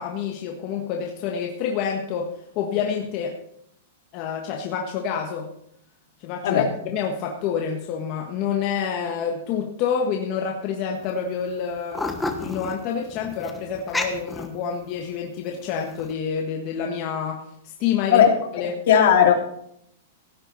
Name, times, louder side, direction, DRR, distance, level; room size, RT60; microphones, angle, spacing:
voice 1, 0.0-3.4 4.1-5.5 6.2-12.1 12.4-18.2 18.5-18.7, left 7 dB, 35° left, 1 dB, 1.5 m, -28 dB
sound 1, 10.9-11.1 11.4-15.1 15.6-16.1, left 2 dB, 5° left, 1.1 m, -31 dB
voice 2, 18.1-19.3, left 9 dB, 55° left, 2 dB, 3.0 m, -17 dB
16.5 x 10.0 x 4.1 m, 0.72 s
supercardioid pair, 165°, 0 cm